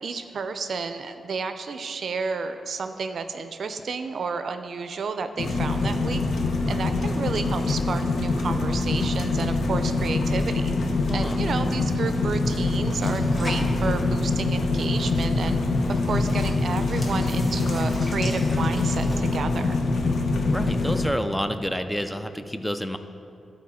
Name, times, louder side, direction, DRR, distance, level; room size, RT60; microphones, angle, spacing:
voice 1, 0.0-6.2 6.7-10.7 11.1-15.6 15.9-19.8, right 5 dB, 65° right, 9 dB, 0.4 m, -31 dB
sound 1, 5.4-21.1, left 3 dB, 70° left, 0.7 m, -24 dB
voice 2, 11.1-11.4 20.5-23.0, equal, 5° left, 8 dB, 0.3 m, -29 dB
sound 2, 12.9-19.2, equal, 25° left, 1.4 m, -41 dB
11.5 x 4.5 x 4.2 m, 2.6 s
wide cardioid pair, 110°, 0 cm